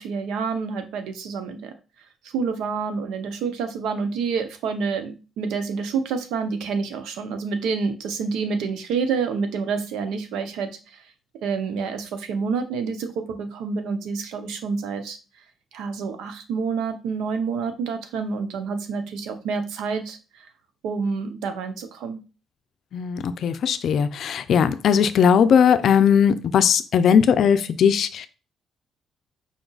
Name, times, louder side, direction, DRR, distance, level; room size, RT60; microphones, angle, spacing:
voice 1, 0.0-1.7 2.2-11.0 11.4-15.2 15.7-20.5 20.8-22.2, right 5 dB, 90° right, 0.6 m, -28 dB
voice 2, 22.9-28.3, left 7 dB, 65° left, 0.4 m, -18 dB
5.0 x 2.3 x 3.9 m
cardioid pair, 90°, 0 cm